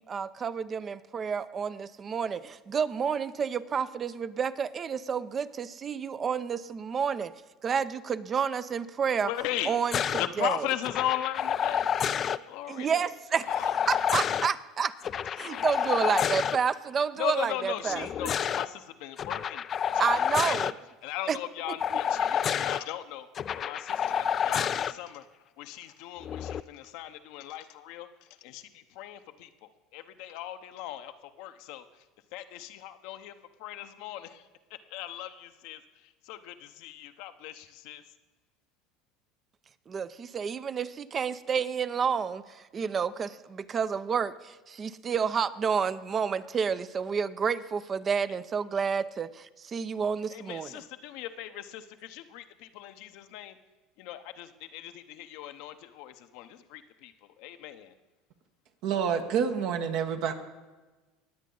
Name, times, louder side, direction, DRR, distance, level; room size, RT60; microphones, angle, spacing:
voice 1, 0.0-7.3 7.6-9.3 9.6-10.7 12.7-14.9 15.4-18.3 20.0-20.7 21.3-21.4 21.7-22.0 39.9-50.8, right 6 dB, 35° right, 14 dB, 0.6 m, -30 dB
voice 2, 9.2-9.8 10.2-11.9 12.4-13.1 13.5-13.8 15.4-15.7 17.2-19.6 20.1-20.7 21.0-23.3 23.6-25.2 25.6-31.8 32.3-33.3 33.6-38.0 50.3-53.5 54.0-57.1 57.4-57.9, left 13 dB, 70° left, 9 dB, 0.8 m, -38 dB
sound 1, 9.9-10.3 10.8-12.4 13.5-14.5 15.0-16.6 17.9-18.7 19.2-20.7 21.8-22.8 23.3-24.9 26.2-26.6, left 8 dB, 40° left, 0.4 m, -29 dB
voice 3, 58.8-60.3, right 7 dB, 65° right, 6 dB, 1.3 m, -28 dB
20.0 x 8.3 x 3.9 m, 1.2 s
hypercardioid pair, 85°, 0 cm